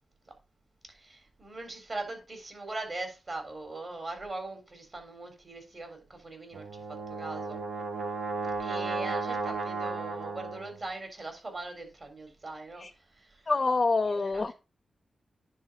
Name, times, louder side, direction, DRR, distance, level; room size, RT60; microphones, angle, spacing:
voice 1, 0.9-7.6 8.6-12.8 13.1-13.5 14.1-14.3, right 2 dB, 45° right, 3.7 m, -40 dB
Brass instrument, 6.5-10.8, right 4 dB, 75° right, 1.3 m, -34 dB
voice 2, 13.5-14.5, left 3 dB, 45° left, 0.6 m, -26 dB
10.0 x 3.8 x 5.5 m
cardioid pair, 50°, 0 cm